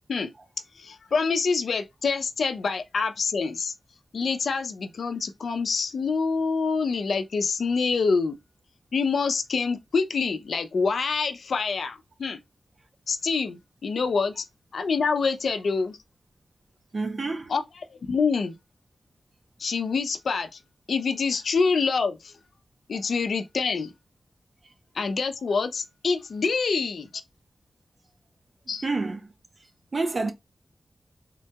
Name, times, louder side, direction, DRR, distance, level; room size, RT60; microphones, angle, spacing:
voice 1, 0.8-3.7 4.1-8.4 8.9-12.4 13.1-14.4 14.7-16.0 17.5-17.6 17.9-18.6 19.6-20.6 20.9-22.3 22.9-23.9 24.9-27.1 28.7-28.8, left 4 dB, 85° left, 0.5 m, -26 dB
voice 2, 16.9-17.5 22.9-23.0 28.8-29.3 29.9-30.3, right 3 dB, 50° right, 0.6 m, -28 dB
3.7 x 2.2 x 2.7 m
wide cardioid pair, 105°, 0 cm